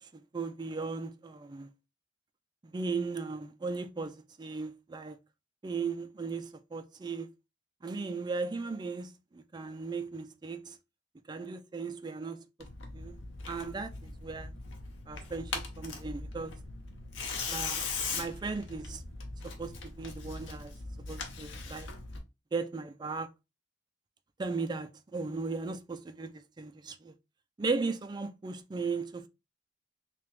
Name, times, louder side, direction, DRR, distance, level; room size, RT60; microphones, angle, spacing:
voice 1, 0.3-1.7 2.6-5.2 5.6-7.3 7.8-10.8 11.3-12.4 12.9-13.2 13.5-14.5 15.1-16.5 17.5-17.9 18.1-19.0 19.4-20.7 21.1-21.9 22.5-23.3 24.4-27.1 27.6-29.3, right 4 dB, 25° right, 0.3 m, -37 dB
Tearing, 12.6-22.2, left 4 dB, 90° left, 0.8 m, -40 dB
3.3 x 2.9 x 3.1 m
head